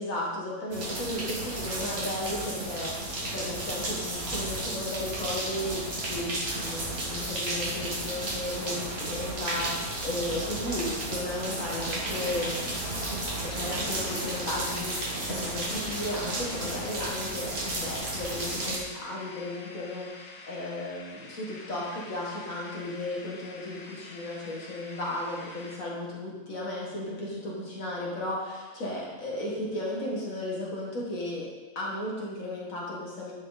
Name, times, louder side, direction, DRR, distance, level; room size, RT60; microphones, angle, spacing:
voice 1, 0.0-12.7 13.4-31.5 31.7-33.3, left 1 dB, 40° left, -4 dB, 1.3 m, -35 dB
sound 1, 0.7-18.8, right 1 dB, 90° right, 0.5 m, -33 dB
sound 2, 12.0-25.8, left 3 dB, 85° left, 2.8 m, -47 dB
10.5 x 6.7 x 4.1 m, 1.2 s
omnidirectional pair, 4.0 m